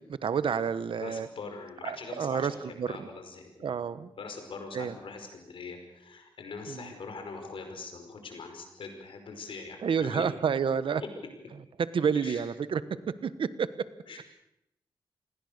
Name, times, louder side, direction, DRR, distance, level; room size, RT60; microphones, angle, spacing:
voice 1, 0.1-1.3 1.9-3.1 3.6-4.1 4.7-4.9 6.7-6.9 9.8-11.0 11.9-12.8 13.2-13.7, right 6 dB, 80° right, 14 dB, 1.2 m, -29 dB
voice 2, 1.0-3.8 4.2-10.2 11.0-11.1 12.1-12.4 14.1-14.2, left 4 dB, 85° left, 5 dB, 5.2 m, -42 dB
28.5 x 20.5 x 6.6 m, 0.82 s
wide cardioid pair, 125°, 9 cm